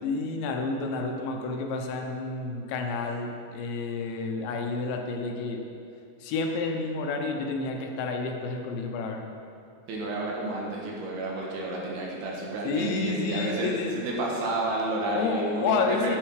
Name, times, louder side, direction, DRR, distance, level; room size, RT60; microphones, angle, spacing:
voice 1, 0.0-5.6 6.2-9.2 12.7-14.0 15.2-16.2, left 4 dB, 85° left, 3 dB, 3.2 m, -30 dB
voice 2, 9.9-16.2, right 2 dB, 65° right, -2 dB, 3.1 m, -30 dB
10.0 x 9.9 x 4.8 m, 2.5 s
omnidirectional pair, 5.0 m